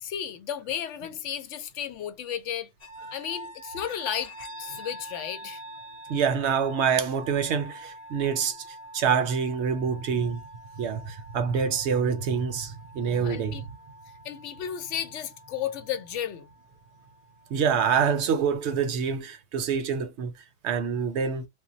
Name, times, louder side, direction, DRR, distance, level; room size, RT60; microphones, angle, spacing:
voice 1, 0.0-2.7 3.1-4.3 4.6-5.6 13.1-13.7 14.2-16.5, left 9 dB, 75° left, 0.9 m, -33 dB
sound 1, 2.8-18.8, right 1 dB, 45° left, 0.6 m, -46 dB
voice 2, 6.1-8.6 8.9-10.4 10.8-13.6 17.5-20.3 20.6-21.5, right 6 dB, 70° right, 0.8 m, -26 dB
2.2 x 2.0 x 3.7 m
omnidirectional pair, 1.3 m